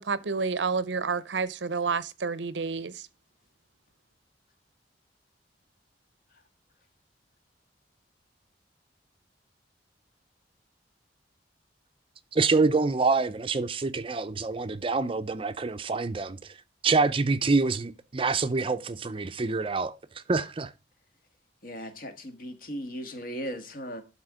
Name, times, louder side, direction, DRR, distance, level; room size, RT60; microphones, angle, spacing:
voice 1, 0.0-3.1, right 5 dB, 80° right, 0.7 m, -29 dB
voice 2, 12.3-16.5 16.8-19.9 20.3-20.7, right 4 dB, 30° right, 0.5 m, -26 dB
voice 3, 21.6-24.0, equal, 50° left, 1.6 m, -37 dB
11.5 x 4.3 x 5.0 m
head